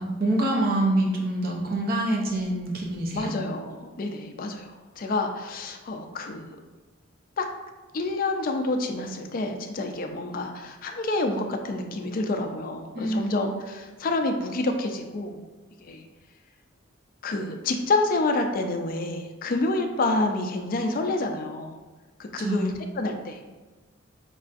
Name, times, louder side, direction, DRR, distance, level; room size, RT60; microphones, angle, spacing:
voice 1, 0.0-3.3 12.9-13.5 22.4-22.7, right 1 dB, 45° right, -1 dB, 0.5 m, -26 dB
voice 2, 3.1-6.6 7.4-7.5 7.9-15.4 15.8-16.0 17.2-21.7 22.2-23.4, left 2 dB, 45° left, 5 dB, 0.4 m, -28 dB
5.4 x 2.4 x 2.4 m, 1.3 s
head